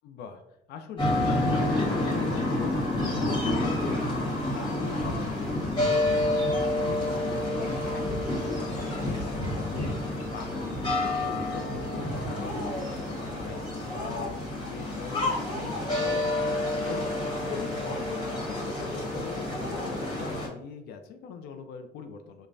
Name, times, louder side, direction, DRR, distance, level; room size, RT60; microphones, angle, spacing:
voice 1, 0.0-0.4 0.7-6.5 6.8-22.5, left 6 dB, 75° left, 6 dB, 0.4 m, -42 dB
sound 1, 1.0-20.5, left 1 dB, 25° left, 1.3 m, -29 dB
5.0 x 2.1 x 2.6 m, 0.86 s
cardioid pair, 110°, 17 cm